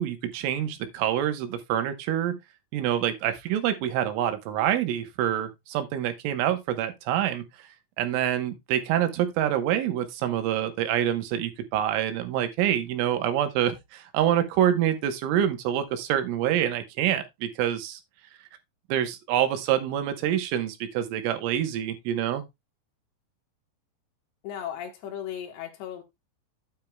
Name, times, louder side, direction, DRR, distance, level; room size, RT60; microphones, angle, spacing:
voice 1, 0.0-2.4 2.7-7.4 8.0-18.0 18.9-22.4, right 10 dB, 85° right, 3.6 m, -26 dB
voice 2, 24.4-26.0, left 9 dB, 70° left, 3.3 m, -36 dB
10.0 x 9.2 x 2.3 m
omnidirectional pair, 5.6 m